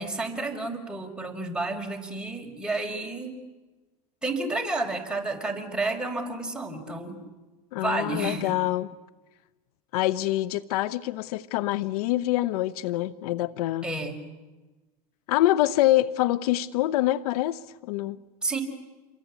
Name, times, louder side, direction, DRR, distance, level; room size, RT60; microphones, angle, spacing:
voice 1, 0.0-3.4 4.2-7.2 7.8-8.6 13.8-14.2 18.4-18.6, right 2 dB, 5° right, 4.9 m, -31 dB
voice 2, 7.7-8.9 9.9-13.9 15.3-18.2, left 15 dB, 70° left, 0.8 m, -25 dB
28.0 x 23.0 x 8.4 m
hypercardioid pair, 95°, 20 cm